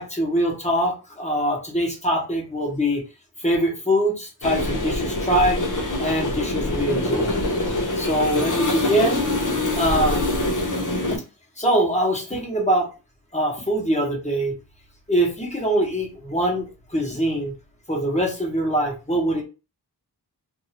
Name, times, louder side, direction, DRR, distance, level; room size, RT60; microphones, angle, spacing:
voice 1, 0.0-3.0 3.4-5.6 6.0-7.3 8.0-9.3 9.8-10.2 11.1-11.2 11.6-12.9 13.3-14.5 15.1-17.5 17.9-19.4, right 1 dB, 15° left, -1 dB, 1.2 m, -23 dB
sound 1, 4.4-11.2, left 1 dB, 50° left, 0.7 m, -24 dB
2.7 x 2.6 x 2.8 m, 0.31 s
wide cardioid pair, 45°, 41 cm